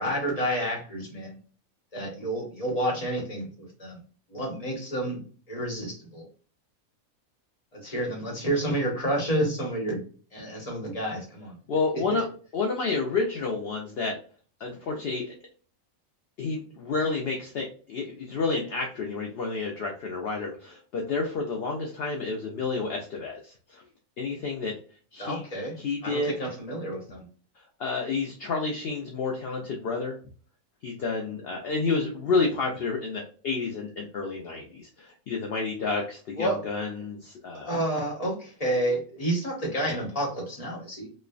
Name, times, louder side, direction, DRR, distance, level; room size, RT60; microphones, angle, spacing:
voice 1, 0.0-1.4 1.9-4.0 4.3-5.2 5.5-6.3 7.7-10.0 10.3-11.5 11.9-12.2 25.2-25.8 26.0-27.3 36.4-36.6 37.5-41.1, right 1 dB, 30° left, -1 dB, 0.9 m, -30 dB
voice 2, 11.7-12.2 12.5-14.2 14.6-15.3 16.4-23.8 24.2-24.8 25.1-25.4 25.8-26.3 27.8-30.2 30.8-37.7, left 4 dB, 70° left, 1 dB, 0.5 m, -30 dB
3.0 x 2.1 x 2.4 m, 0.41 s
omnidirectional pair, 1.5 m